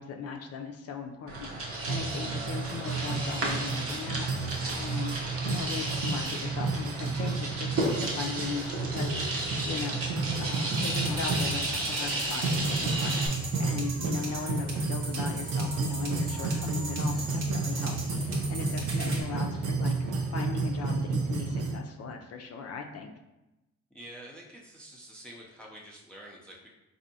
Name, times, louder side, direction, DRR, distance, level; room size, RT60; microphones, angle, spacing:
voice 1, 0.0-4.5 4.8-5.1 5.4-10.0 10.4-20.0 20.3-23.1, left 5 dB, 55° left, 3 dB, 0.4 m, -38 dB
sound 1, 1.3-13.3, right 2 dB, 50° right, 0.8 m, -33 dB
sound 2, 1.9-21.8, right 3 dB, 85° right, 0.6 m, -32 dB
sound 3, 10.8-19.2, right 2 dB, 65° right, 1.1 m, -39 dB
voice 2, 23.9-26.7, right 1 dB, 5° left, -3 dB, 0.5 m, -47 dB
4.1 x 2.7 x 2.7 m, 0.99 s
cardioid pair, 90°, 30 cm